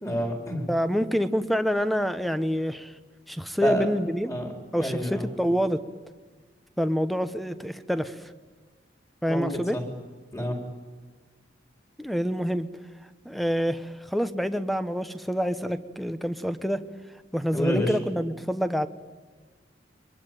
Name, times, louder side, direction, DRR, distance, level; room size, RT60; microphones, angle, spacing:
voice 1, 0.0-0.7 3.6-3.9 4.2-5.3 9.3-9.8 10.3-10.6 17.5-18.0, equal, 15° left, 3 dB, 4.3 m, -29 dB
voice 2, 0.7-2.9 3.3-4.4 4.7-5.8 6.8-8.2 9.2-9.8 12.0-12.7 13.2-16.8 17.3-18.9, equal, ahead, 11 dB, 1.0 m, -27 dB
23.5 x 22.0 x 9.3 m, 1.4 s
head